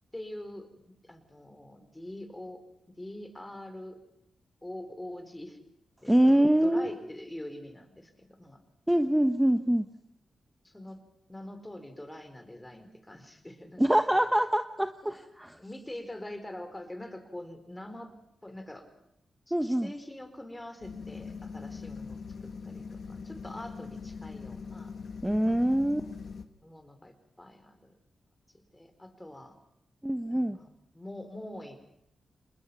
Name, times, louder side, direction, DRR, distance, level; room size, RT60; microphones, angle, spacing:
voice 1, 0.1-2.6 3.0-4.0 4.6-5.6 6.0-8.6 10.6-11.0 11.3-13.8 14.1-14.3 15.0-15.3 15.6-18.1 18.4-18.9 19.5-22.2 22.6-24.9 25.5-26.1 26.6-27.9 28.5-29.5 30.3-31.8, left 1 dB, 15° left, 8 dB, 4.3 m, -44 dB
voice 2, 6.1-6.9 8.9-9.9 13.8-15.6 19.5-19.9 25.2-26.0 30.0-30.6, right 1 dB, 10° right, 9 dB, 1.1 m, -24 dB
sound 1, 20.8-26.5, left 5 dB, 65° left, 1.5 m, -42 dB
27.0 x 20.5 x 6.0 m, 0.78 s
supercardioid pair, 40°, 0 cm